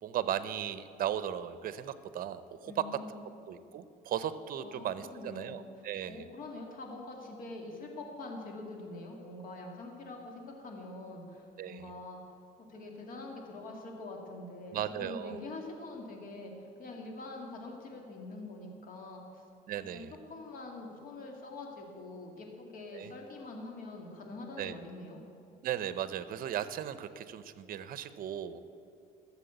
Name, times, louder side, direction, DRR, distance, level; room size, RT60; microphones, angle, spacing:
voice 1, 0.0-2.9 3.5-6.3 11.6-11.9 14.7-15.4 19.7-20.1 22.9-23.1 24.6-24.8 25.6-28.6, right 10 dB, 60° right, 13 dB, 0.7 m, -36 dB
voice 2, 2.7-3.2 4.6-5.6 6.1-19.4 19.8-25.2, left 2 dB, 55° left, 1 dB, 2.4 m, -45 dB
13.0 x 7.3 x 8.1 m, 2.6 s
cardioid pair, 110°, 17 cm